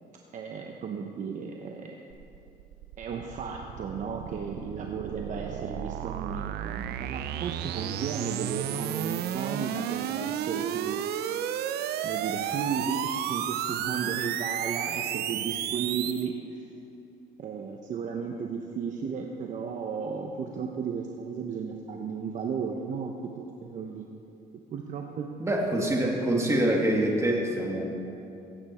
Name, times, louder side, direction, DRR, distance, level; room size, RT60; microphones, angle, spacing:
voice 1, 0.3-2.0 3.0-11.0 12.0-16.7 17.4-23.1 23.6-24.2 24.7-25.3, right 6 dB, 50° right, 2 dB, 0.9 m, -34 dB
sound 1, 2.1-16.3, right 10 dB, 75° right, 0.5 m, -33 dB
voice 2, 25.4-27.8, right 1 dB, 15° right, 0 dB, 1.9 m, -25 dB
16.5 x 8.8 x 4.3 m, 2.9 s
cardioid pair, 110°, 17 cm